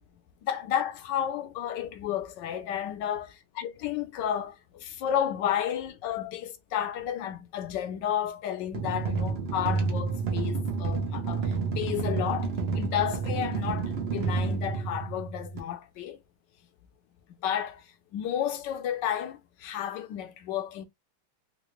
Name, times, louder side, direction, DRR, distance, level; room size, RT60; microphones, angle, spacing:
voice 1, 0.4-3.3 3.6-16.2 17.4-17.8 18.1-20.9, left 10 dB, 70° left, 1.1 m, -32 dB
sound 1, 8.7-15.6, right 4 dB, 90° right, 0.5 m, -30 dB
3.8 x 2.4 x 3.0 m
omnidirectional pair, 2.3 m